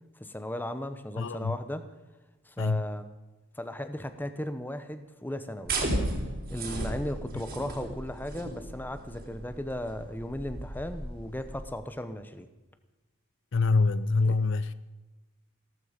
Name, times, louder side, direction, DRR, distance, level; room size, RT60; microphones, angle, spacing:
voice 1, 0.1-1.9 2.5-3.1 3.6-5.8 6.5-12.5 14.2-14.4, left 1 dB, 10° left, 0.9 m, -36 dB
voice 2, 1.2-1.5 2.6-2.8 13.5-14.7, left 3 dB, 55° left, 0.5 m, -25 dB
sound 1, 5.6-11.7, right 1 dB, 45° right, 4.0 m, -35 dB
17.0 x 14.0 x 5.2 m
head